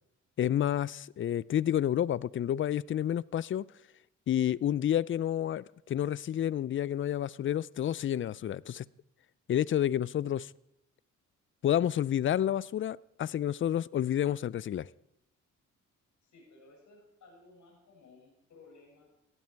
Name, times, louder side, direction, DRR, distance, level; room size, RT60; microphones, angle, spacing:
voice 1, 0.4-3.7 4.3-8.8 9.5-10.5 11.6-14.9, left 11 dB, 40° left, 0.4 m, -29 dB
voice 2, 16.2-19.1, left 3 dB, 65° left, 6.8 m, -57 dB
18.0 x 12.5 x 4.6 m
cardioid pair, 75°, 31 cm